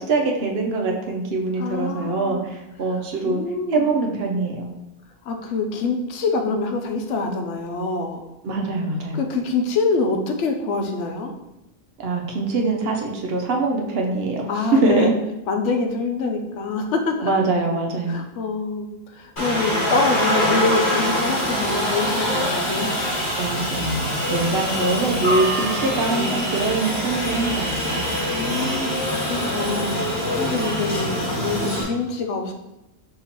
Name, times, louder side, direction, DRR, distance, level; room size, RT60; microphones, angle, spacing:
voice 1, 0.0-3.4 3.7-4.6 8.4-9.2 12.0-14.4 14.7-15.1 17.2-18.2 23.4-28.0, right 3 dB, 65° right, 1 dB, 0.9 m, -23 dB
voice 2, 1.6-2.4 3.2-3.9 5.3-8.2 9.1-11.3 14.5-15.1 15.5-17.3 18.1-18.9 19.2-22.9 24.7-26.5 28.3-28.9 29.2-30.0 30.3-32.5, left 3 dB, 85° left, 4 dB, 0.9 m, -25 dB
Aircraft, 19.4-31.8, equal, 45° left, 1.5 m, -24 dB
5.6 x 2.9 x 2.9 m, 0.92 s
omnidirectional pair, 1.2 m